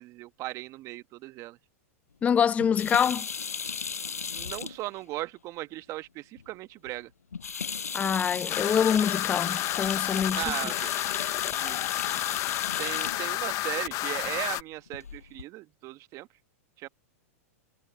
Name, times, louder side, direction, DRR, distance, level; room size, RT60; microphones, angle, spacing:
voice 1, 0.0-1.6 4.3-7.1 10.4-10.9 11.5-11.8 12.8-16.3 16.8-16.9, right 17 dB, 40° right, 1.5 m, -37 dB
voice 2, 2.2-3.2 7.9-10.4, left 7 dB, 15° left, 0.4 m, -25 dB
sound 1, 2.6-5.0 6.4-6.5 6.9-7.0 7.3-13.2 14.9-15.4, left 6 dB, 90° left, 6.4 m, -35 dB
sound 2, 8.5-14.6, left 19 dB, 40° left, 1.0 m, -31 dB
hypercardioid pair, 110°, 8 cm